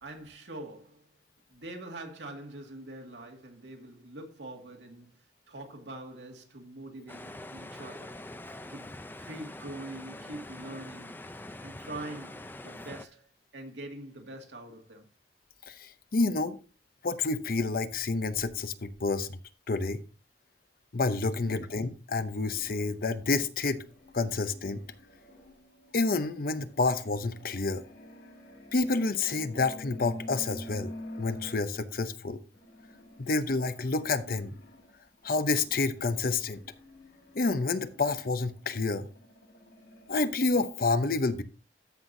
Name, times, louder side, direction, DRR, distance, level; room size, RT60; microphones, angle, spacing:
voice 1, 0.0-1.0 1.5-8.2 8.7-11.2 11.6-13.3 13.5-15.1 21.3-21.6, right 1 dB, 85° right, 2.1 m, -44 dB
sound 1, 7.1-13.1, left 1 dB, 10° left, 0.5 m, -44 dB
voice 2, 15.7-16.6 17.0-19.4 19.7-20.0 20.9-23.8 24.1-24.8 25.9-27.8 28.7-30.9 31.2-32.4 33.2-34.5 35.2-36.6 37.3-39.1 40.1-41.4, left 3 dB, 55° left, 0.7 m, -29 dB
sound 2, 22.3-32.0 32.5-40.3, left 1 dB, 90° left, 3.6 m, -48 dB
14.0 x 5.8 x 2.7 m
head